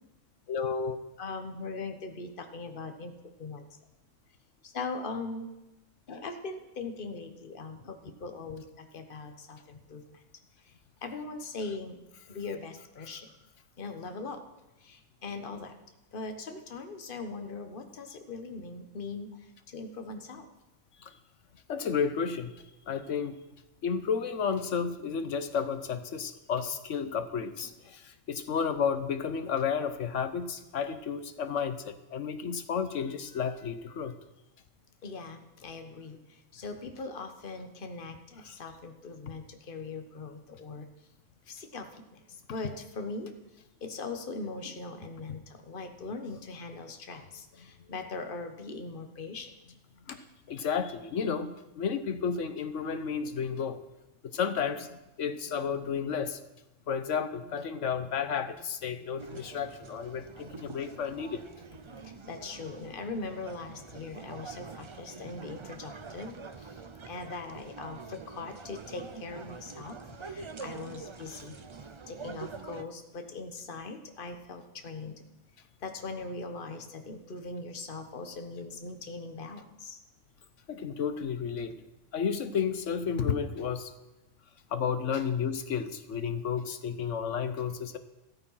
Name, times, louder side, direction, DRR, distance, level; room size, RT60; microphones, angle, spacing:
voice 1, 0.5-1.0 21.0-21.1 21.7-22.5 22.9-23.4 23.8-34.1 50.1-50.2 50.5-53.8 54.3-56.4 56.9-61.4 80.7-81.8 82.1-83.9 84.7-88.0, left 6 dB, 75° left, 10 dB, 1.3 m, -32 dB
voice 2, 1.2-3.7 4.6-5.5 6.1-10.2 10.6-10.7 11.0-12.0 12.3-13.3 13.8-14.4 14.8-15.7 16.1-20.5 35.0-40.9 41.5-43.3 43.8-49.5 50.1-50.2 62.0-66.8 67.1-71.6 72.1-75.2 75.8-80.0 85.1-85.2, left 3 dB, 45° left, 6 dB, 1.4 m, -40 dB
sound 1, 59.2-72.8, right 5 dB, 35° right, 0.6 m, -46 dB
14.0 x 13.5 x 5.7 m, 0.98 s
omnidirectional pair, 1.3 m